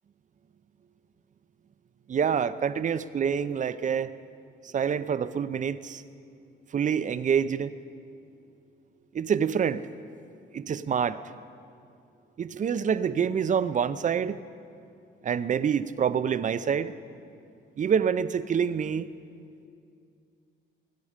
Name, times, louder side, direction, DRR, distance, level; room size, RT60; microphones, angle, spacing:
voice 1, 2.1-4.1 4.7-6.0 6.7-7.7 9.1-9.9 10.5-11.2 12.4-14.4 15.2-16.9 17.8-19.1, right 7 dB, 40° right, 15 dB, 0.5 m, -26 dB
20.5 x 8.4 x 5.0 m, 2.5 s
cardioid pair, 90°, 20 cm